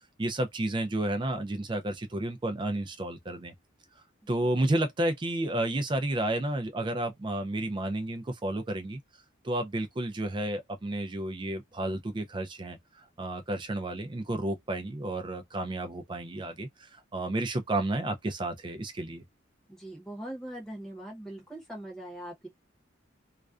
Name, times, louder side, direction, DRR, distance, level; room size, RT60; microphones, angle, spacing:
voice 1, 0.2-3.5 4.3-9.0 9.4-12.8 13.2-19.2, right 1 dB, 25° right, 0.4 m, -31 dB
voice 2, 19.7-22.5, right 1 dB, 5° left, 0.8 m, -41 dB
2.4 x 2.2 x 2.3 m
head